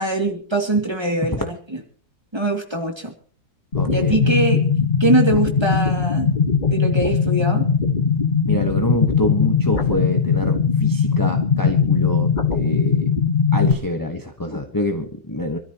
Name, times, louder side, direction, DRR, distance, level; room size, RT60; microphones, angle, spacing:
voice 1, 0.0-1.5 2.3-3.1 3.9-4.6 5.0-6.3 6.7-7.7, right 2 dB, 15° right, 2 dB, 2.4 m, -22 dB
sound 1, 3.7-13.7, left 5 dB, 30° left, 1.6 m, -19 dB
voice 2, 3.7-4.4 8.5-13.1 13.5-15.6, left 2 dB, 15° left, 4 dB, 1.1 m, -26 dB
25.5 x 13.5 x 3.0 m, 0.42 s
omnidirectional pair, 1.6 m